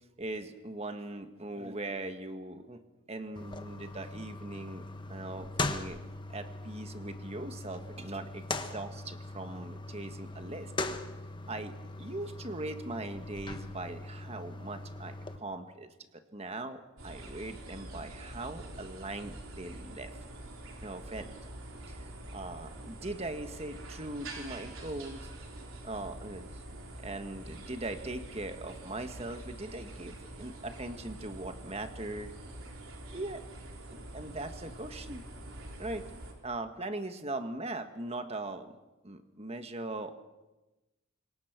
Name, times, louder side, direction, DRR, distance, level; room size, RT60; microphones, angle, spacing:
voice 1, 0.2-2.8 3.1-6.0 6.3-10.7 11.5-20.2 20.8-21.3 21.9-25.3 25.8-26.6 27.0-32.3 33.1-33.4 33.9-35.2 35.8-36.1 36.4-38.8 39.0-40.1, right 2 dB, 30° right, 8 dB, 1.6 m, -40 dB
sound 1, 3.4-15.4, left 2 dB, 20° left, 1.2 m, -40 dB
sound 2, 17.0-36.3, right 1 dB, 65° right, 4.5 m, -46 dB
26.5 x 22.5 x 6.1 m, 1.1 s
head